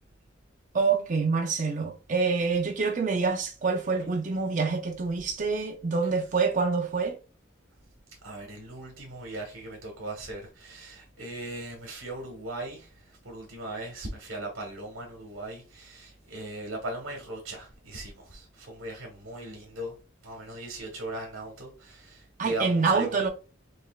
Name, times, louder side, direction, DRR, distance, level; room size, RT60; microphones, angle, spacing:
voice 1, 0.7-7.2 22.4-23.3, right 4 dB, 40° right, 0.6 m, -26 dB
voice 2, 8.2-19.9 20.2-23.2, right 1 dB, 75° right, 1.3 m, -38 dB
5.3 x 3.3 x 2.3 m
head